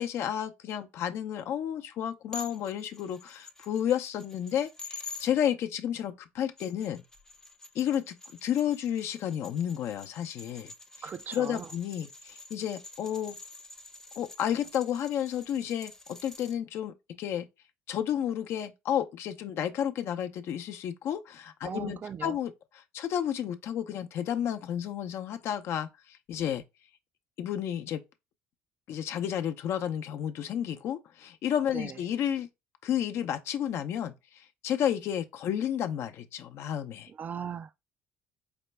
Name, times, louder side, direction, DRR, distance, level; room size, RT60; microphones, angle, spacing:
voice 1, 0.0-7.0 7.7-8.2 8.4-10.7 11.3-13.4 14.1-17.4 17.9-26.6 27.4-28.0 28.9-32.5 32.8-37.1, left 10 dB, 60° left, 0.6 m, -31 dB
sound 1, 2.3-5.3 6.4-16.6, left 3 dB, 10° left, 0.6 m, -48 dB
voice 2, 11.0-11.7 21.6-22.4 31.7-32.0 37.1-37.8, right 7 dB, 35° right, 0.3 m, -38 dB
5.1 x 2.2 x 3.2 m
supercardioid pair, 85°, 5 cm